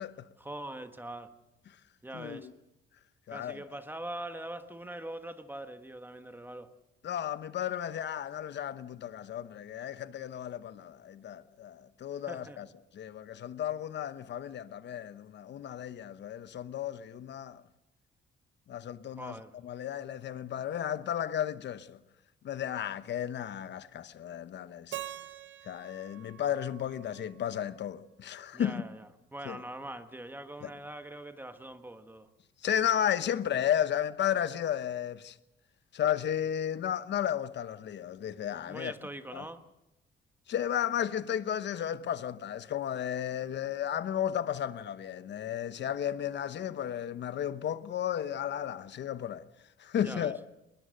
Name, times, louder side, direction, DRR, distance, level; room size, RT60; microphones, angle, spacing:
voice 1, 0.4-1.3 2.0-2.5 3.3-6.7 12.3-12.7 19.2-19.5 28.5-32.3 38.7-39.6 50.0-50.3, right 1 dB, 10° right, 1.4 m, -42 dB
voice 2, 2.1-2.5 3.3-3.6 7.0-12.7 12.9-17.6 18.7-19.4 19.6-22.0 22.4-25.0 25.6-28.8 29.4-29.6 30.6-30.7 32.6-35.4 35.9-38.9 39.3-39.4 40.5-49.4 49.8-50.4, left 10 dB, 60° left, 1.0 m, -33 dB
Keyboard (musical), 24.9-27.9, right 13 dB, 70° right, 0.9 m, -45 dB
20.5 x 20.5 x 6.5 m
cardioid pair, 90°, 20 cm